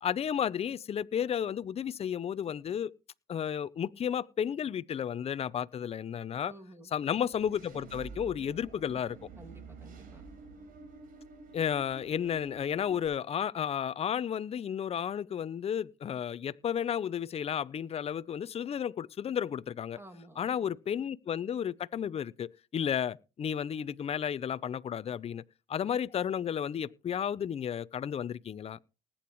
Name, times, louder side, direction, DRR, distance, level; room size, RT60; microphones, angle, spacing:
voice 1, 0.0-2.9 3.3-6.5 6.9-9.3 11.5-20.0 20.4-25.4 25.7-28.8, left 8 dB, 40° left, 0.6 m, -33 dB
voice 2, 6.4-6.9 9.4-10.3 19.9-20.5, right 1 dB, 15° right, 2.4 m, -52 dB
Engine / Mechanisms, 7.1-13.1, right 4 dB, 65° right, 4.6 m, -49 dB
19.5 x 8.7 x 3.1 m
cardioid pair, 85°, 15 cm